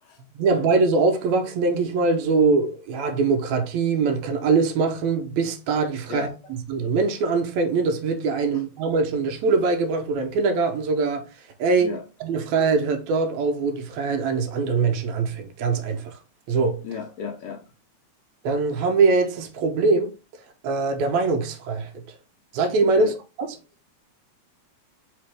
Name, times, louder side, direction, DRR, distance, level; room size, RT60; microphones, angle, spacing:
voice 1, 0.3-6.3 6.7-11.3 11.6-11.9 12.2-16.2 16.5-16.8 18.4-20.2 20.6-22.0 22.5-23.1, right 4 dB, 80° right, 1.8 m, -22 dB
voice 2, 16.8-17.6 22.9-23.1, left 5 dB, 75° left, 1.6 m, -33 dB
4.2 x 3.3 x 3.2 m
omnidirectional pair, 3.4 m